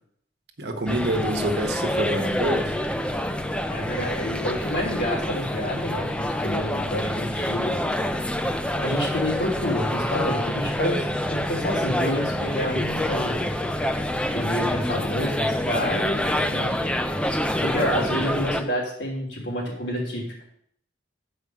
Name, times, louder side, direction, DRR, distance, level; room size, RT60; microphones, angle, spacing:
voice 1, 0.6-2.8, right 1 dB, 60° right, 4 dB, 1.2 m, -26 dB
sound 1, 0.9-18.6, left 1 dB, 5° left, 0.5 m, -27 dB
voice 2, 3.7-7.8 8.8-13.5 14.3-16.8 17.6-20.4, equal, 75° left, -2 dB, 3.1 m, -28 dB
8.1 x 5.0 x 6.4 m, 0.67 s
head